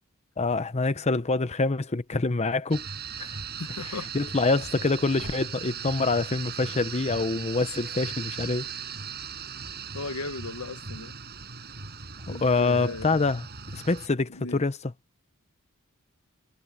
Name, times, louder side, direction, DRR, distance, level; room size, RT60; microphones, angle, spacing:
voice 1, 0.4-2.9 3.2-3.3 3.8-8.7 12.4-13.4 13.7-14.9, left 3 dB, 30° left, 0.8 m, -26 dB
sound 1, 1.9-2.5 4.7-6.2, right 2 dB, 65° right, 2.2 m, -50 dB
sound 2, 2.7-14.1, right 6 dB, 50° right, 5.4 m, -38 dB
voice 2, 3.6-4.1 9.9-11.1 12.3-13.1 14.3-14.6, left 3 dB, 80° left, 1.1 m, -36 dB
head